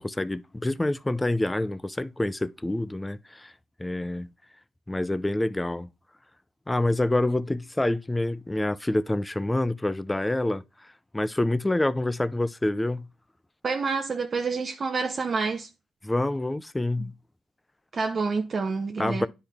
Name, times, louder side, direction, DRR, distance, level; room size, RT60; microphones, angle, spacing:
voice 1, 0.0-3.5 3.8-4.3 4.9-5.9 6.7-10.6 11.1-13.1 16.0-17.1 19.0-19.3, left 1 dB, 10° left, 0.6 m, -27 dB
voice 2, 13.6-15.7 17.9-19.3, right 4 dB, 40° right, 0.9 m, -28 dB
9.9 x 4.5 x 3.5 m
cardioid pair, 90°, 0 cm